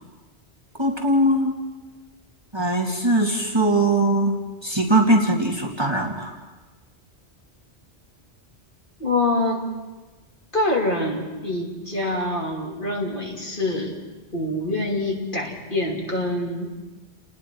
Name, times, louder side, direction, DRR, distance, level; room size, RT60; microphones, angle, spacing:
voice 1, 0.8-1.5 2.5-4.4 4.6-6.3, right 1 dB, 25° right, -1 dB, 2.3 m, -20 dB
voice 2, 9.0-9.6 10.5-14.0 14.3-16.7, left 2 dB, 50° left, -2 dB, 3.2 m, -25 dB
30.0 x 19.5 x 4.6 m, 1.2 s
omnidirectional pair, 1.2 m